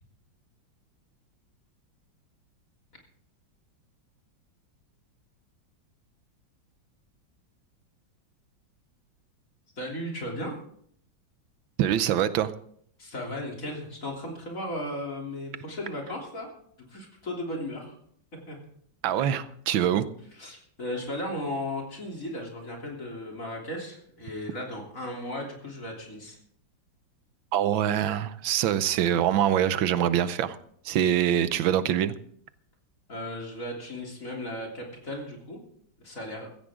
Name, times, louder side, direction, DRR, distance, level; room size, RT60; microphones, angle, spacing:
voice 1, 9.8-10.6 13.0-16.5 16.9-17.9 18.5-18.6 20.3-26.4 33.1-35.6 36.0-36.5, left 1 dB, 45° left, -1 dB, 3.7 m, -36 dB
voice 2, 11.8-12.5 19.0-20.1 27.5-30.6 30.8-32.1, right 10 dB, 90° right, 13 dB, 1.6 m, -24 dB
16.0 x 14.5 x 3.7 m, 0.66 s
omnidirectional pair, 2.1 m